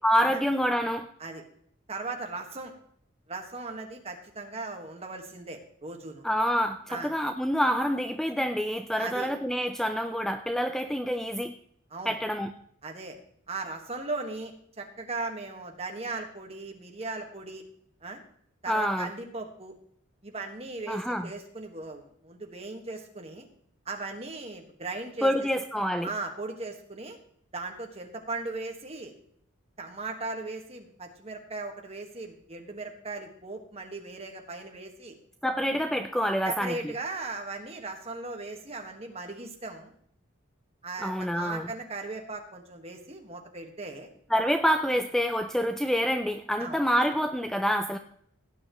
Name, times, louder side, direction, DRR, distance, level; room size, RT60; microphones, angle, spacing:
voice 1, 0.0-1.1 6.2-11.5 12.1-12.5 18.7-19.1 20.9-21.3 25.2-26.1 35.4-36.9 41.0-41.7 44.3-48.0, equal, ahead, 8 dB, 0.4 m, -27 dB
voice 2, 1.9-2.7 3.3-6.2 6.9-7.1 9.0-9.3 11.9-12.2 12.8-13.2 13.5-17.6 18.0-18.2 18.6-19.7 20.2-23.5 23.8-25.3 26.0-27.2 27.5-29.1 29.8-35.2 36.4-39.9 40.8-44.1 46.6-46.8, right 3 dB, 30° right, 3 dB, 1.6 m, -38 dB
17.5 x 9.3 x 3.1 m, 0.65 s
head